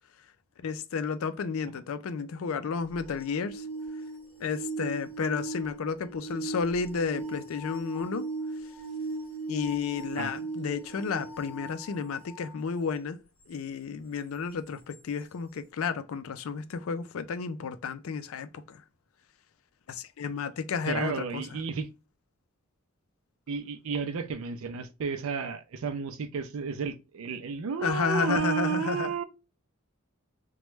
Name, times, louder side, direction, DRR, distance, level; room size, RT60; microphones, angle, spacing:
voice 1, 0.6-3.6 4.4-8.3 9.5-13.2 13.5-18.8 19.9-21.6 27.8-29.1, left 5 dB, 75° left, 0.4 m, -32 dB
sound 1, 2.8-12.6 14.9-15.0, right 3 dB, 5° left, 0.7 m, -38 dB
voice 2, 20.9-21.9 23.5-29.2, right 6 dB, 75° right, 0.4 m, -32 dB
3.0 x 2.2 x 3.2 m
head